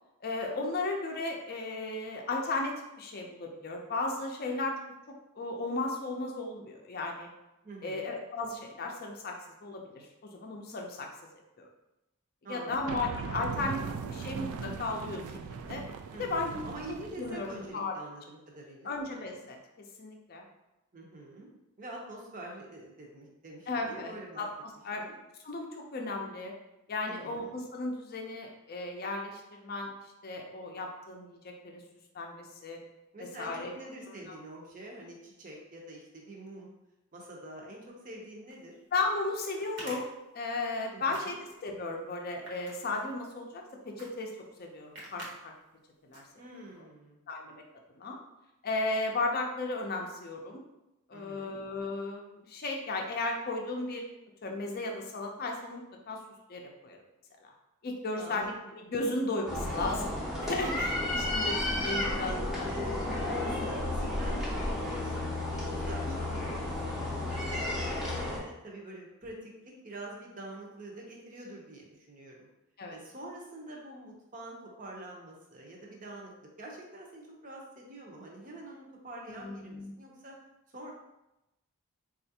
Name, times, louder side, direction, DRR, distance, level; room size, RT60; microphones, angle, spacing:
voice 1, 0.2-2.7 3.0-4.8 5.4-7.3 7.8-9.3 9.6-11.1 11.6-11.7 12.5-13.8 14.1-15.8 16.2-16.6 17.2-17.9 18.8-20.4 23.7-25.0 25.4-26.5 26.9-29.9 30.2-31.8 32.1-32.8 33.4-33.7 34.3-34.4 38.9-40.1 40.3-45.5 46.1-46.2 47.3-47.6 48.0-48.2 48.6-50.6 51.1-54.0 54.4-56.2 56.5-57.0 57.4-57.5 57.8-60.1 60.4-62.7 66.1-66.2 72.8-73.0 79.4-79.9, left 2 dB, 45° left, 2 dB, 0.5 m, -35 dB
voice 2, 7.6-8.1 12.4-12.7 16.1-19.0 20.9-21.5 21.8-24.5 25.0-25.1 27.1-27.6 33.1-36.7 37.1-38.8 40.9-41.4 46.4-47.2 51.1-51.6 58.1-58.5 59.6-60.0 60.6-60.9 62.0-67.4 67.9-69.5 69.8-72.5 72.9-76.3 76.6-80.3 80.7-80.9, right 1 dB, 35° right, -1 dB, 0.7 m, -46 dB
sound 1, 12.7-17.7, right 5 dB, 85° right, 0.3 m, -39 dB
sound 2, 38.5-38.6 39.6-40.8 41.1-41.6 42.2-43.4 44.0-44.1 44.4-44.5 44.9-45.3 45.7-45.8 46.1-46.7, right 1 dB, 55° right, 0.9 m, -46 dB
sound 3, 59.5-68.4, left 1 dB, ahead, 0.6 m, -32 dB
4.3 x 2.4 x 2.7 m, 0.93 s
head